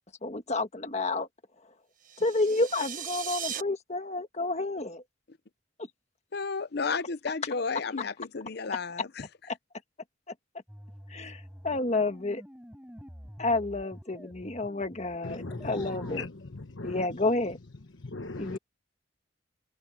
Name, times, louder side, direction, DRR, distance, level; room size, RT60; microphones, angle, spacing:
voice 1, 0.2-1.3 2.2-5.0 5.8-5.9 9.5-9.6 11.1-12.4 13.4-16.2 16.8-17.6 18.4-18.6, left 2 dB, 35° left, 1.5 m, -30 dB
sound 1, 2.0-3.6, right 9 dB, 45° right, 1.3 m, -37 dB
voice 2, 6.3-9.3, left 4 dB, 55° left, 0.7 m, -32 dB
sound 2, 10.7-16.2, equal, 5° right, 7.1 m, -48 dB
voice 3, 15.2-17.0 18.1-18.6, left 3 dB, 75° left, 1.2 m, -38 dB
head